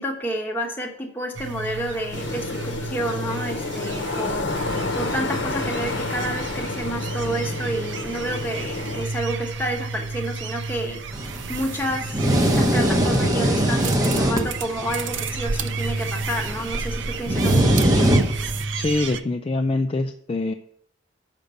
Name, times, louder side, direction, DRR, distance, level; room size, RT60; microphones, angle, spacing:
voice 1, 0.0-4.5 4.9-11.0 11.5-18.1, right 1 dB, 10° left, 1 dB, 1.1 m, -30 dB
sound 1, 1.3-19.2, right 4 dB, 70° right, 0.5 m, -32 dB
sound 2, 2.1-9.0, left 3 dB, 65° left, 0.9 m, -30 dB
sound 3, 11.1-18.6, right 1 dB, 20° right, 0.9 m, -23 dB
voice 2, 18.7-20.5, left 2 dB, 30° left, 6 dB, 0.3 m, -24 dB
6.5 x 5.3 x 6.9 m, 0.67 s
head